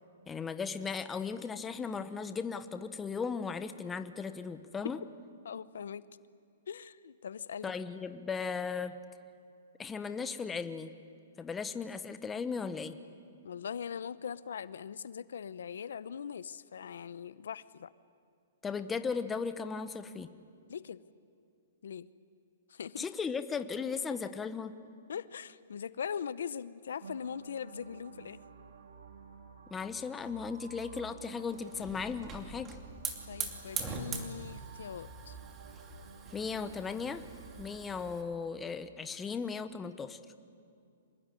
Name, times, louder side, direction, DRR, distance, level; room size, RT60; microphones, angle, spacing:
voice 1, 0.3-5.0 7.6-9.0 9.8-10.9 11.4-13.0 18.6-20.3 23.0-24.8 29.7-32.8 36.3-37.2 37.6-40.2, left 5 dB, 10° left, 10 dB, 1.0 m, -36 dB
voice 2, 5.4-6.1 6.7-7.7 13.4-17.9 20.7-21.0 21.8-22.1 22.7-23.1 25.1-28.4 33.3-35.4, left 7 dB, 75° left, 16 dB, 0.8 m, -41 dB
sound 1, 27.0-39.0, right 6 dB, 80° right, 2.6 m, -53 dB
Hiss / Fire, 31.4-38.2, right 5 dB, 20° right, 2.6 m, -43 dB
26.0 x 21.0 x 9.9 m, 2.4 s
hypercardioid pair, 155°, 0 cm